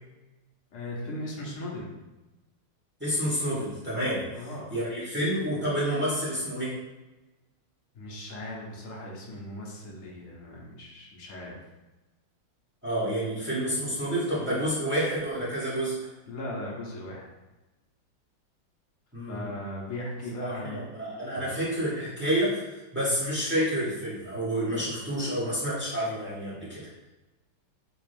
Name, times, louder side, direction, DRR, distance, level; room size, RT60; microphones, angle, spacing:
voice 1, 0.7-1.9 4.3-4.7 7.9-11.6 16.3-17.3 19.3-20.9 21.3-21.5, left 1 dB, 65° left, -3 dB, 0.8 m, -38 dB
voice 2, 3.0-4.2 4.7-6.7 12.8-16.0 19.1-19.5 20.4-26.9, equal, 10° right, -10 dB, 0.7 m, -29 dB
3.4 x 2.9 x 3.3 m, 1.1 s
omnidirectional pair, 2.3 m